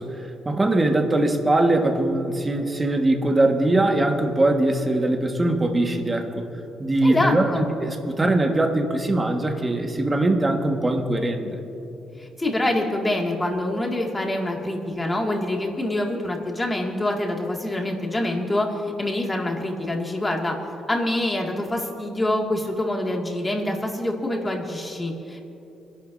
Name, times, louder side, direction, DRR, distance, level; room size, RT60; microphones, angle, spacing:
voice 1, 0.0-6.5 6.8-7.5 7.8-11.6, right 2 dB, 20° right, 3 dB, 1.5 m, -21 dB
voice 2, 7.0-7.7 12.2-20.6 20.9-25.4, left 1 dB, 15° left, 0 dB, 2.1 m, -25 dB
26.5 x 11.5 x 2.7 m, 2.9 s
cardioid pair, 90°, 0 cm